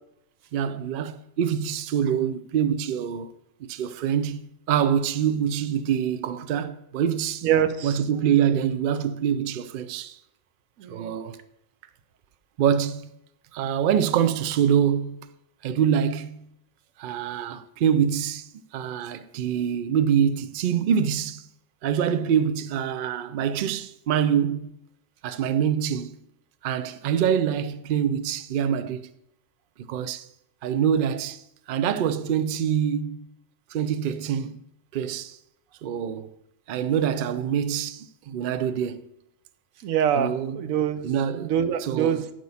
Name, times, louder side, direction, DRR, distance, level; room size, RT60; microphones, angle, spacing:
voice 1, 0.5-3.3 3.6-4.4 4.7-7.5 7.8-10.2 10.9-11.4 12.6-13.1 13.5-15.2 15.6-16.5 17.0-21.5 21.8-24.7 25.2-26.2 26.6-29.1 29.9-30.3 30.6-31.4 31.7-33.3 33.7-34.6 34.9-35.4 35.8-36.3 36.7-39.1 40.2-40.6 41.0-41.5 41.8-42.2, right 8 dB, 70° right, 0.5 m, -25 dB
voice 2, 7.4-8.0 10.8-11.1 39.8-41.1 41.4-42.2, right 9 dB, 85° right, 1.1 m, -24 dB
9.3 x 6.2 x 4.1 m
omnidirectional pair, 1.4 m